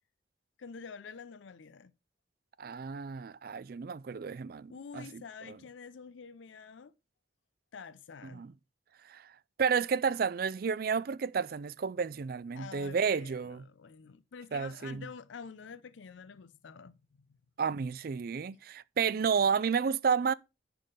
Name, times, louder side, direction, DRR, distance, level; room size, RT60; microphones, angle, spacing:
voice 1, 0.6-1.9 4.7-6.9 7.7-8.5 12.5-17.4, left 5 dB, 80° left, 0.5 m, -48 dB
voice 2, 2.6-5.6 8.3-8.5 9.0-9.3 9.6-13.6 14.5-15.0 17.6-20.3, right 6 dB, 50° right, 0.4 m, -31 dB
10.5 x 3.8 x 6.6 m
head